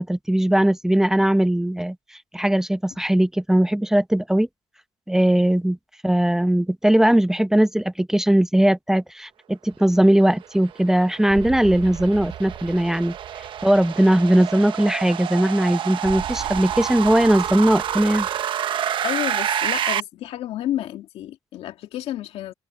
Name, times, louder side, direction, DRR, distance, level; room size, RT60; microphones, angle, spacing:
voice 1, 0.0-2.0 2.3-4.5 5.1-5.8 6.0-13.2 13.6-18.3, right 1 dB, 5° right, 0.8 m, -19 dB
sound 1, 9.7-18.4, right 12 dB, 70° right, 4.2 m, -41 dB
sound 2, 10.4-20.0, right 10 dB, 55° right, 1.1 m, -28 dB
voice 2, 19.0-22.5, left 12 dB, 75° left, 2.0 m, -30 dB
cardioid pair, 130°, 10 cm